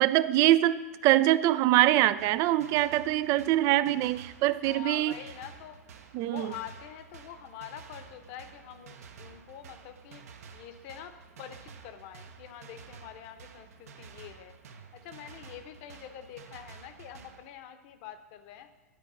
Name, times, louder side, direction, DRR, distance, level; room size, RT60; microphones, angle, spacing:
voice 1, 0.0-5.1 6.1-6.5, right 15 dB, 35° right, 16 dB, 0.4 m, -24 dB
sound 1, 2.2-17.4, right 6 dB, 65° right, 0.9 m, -51 dB
voice 2, 4.5-5.8 6.3-10.2 10.5-14.5 14.9-18.7, left 10 dB, 45° left, 9 dB, 1.0 m, -45 dB
11.5 x 4.5 x 7.0 m, 1.2 s
figure-of-eight pair, 105°, 9 cm